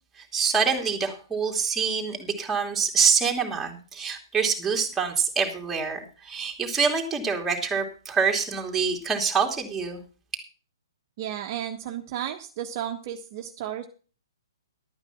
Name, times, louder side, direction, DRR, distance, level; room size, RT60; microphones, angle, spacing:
voice 1, 0.2-10.0, right 5 dB, 10° right, 1 dB, 2.7 m, -26 dB
voice 2, 11.2-13.9, right 10 dB, 40° right, 4 dB, 1.2 m, -33 dB
12.0 x 8.9 x 5.8 m, 0.38 s
figure-of-eight pair, 130°, 2 cm